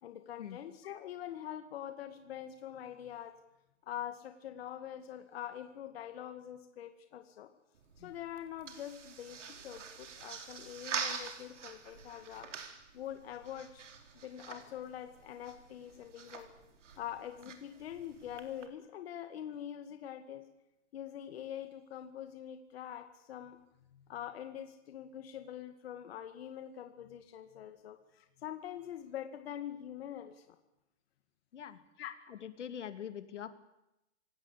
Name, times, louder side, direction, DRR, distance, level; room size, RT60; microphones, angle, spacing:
voice 1, 0.0-3.3 3.8-7.5 8.0-12.5 12.9-13.9 14.1-16.5 17.0-20.5 20.9-23.6 23.9-30.6 32.0-32.1, left 10 dB, 55° left, 7 dB, 2.2 m, -44 dB
sound 1, 7.7-18.7, right 6 dB, 80° right, 4.4 m, -45 dB
voice 2, 32.3-33.5, left 9 dB, 75° left, 10 dB, 2.7 m, -43 dB
26.0 x 18.0 x 8.5 m, 0.90 s
hypercardioid pair, 160°, 36 cm